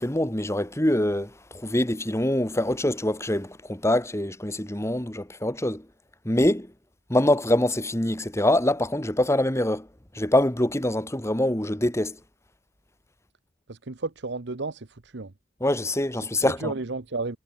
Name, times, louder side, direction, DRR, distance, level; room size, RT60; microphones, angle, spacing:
voice 1, 0.0-5.9 6.3-6.7 7.1-9.9 10.1-12.2 15.6-16.7, left 1 dB, 15° left, 1.9 m, -24 dB
voice 2, 13.7-15.3 16.3-17.4, right 3 dB, 60° right, 1.0 m, -33 dB
head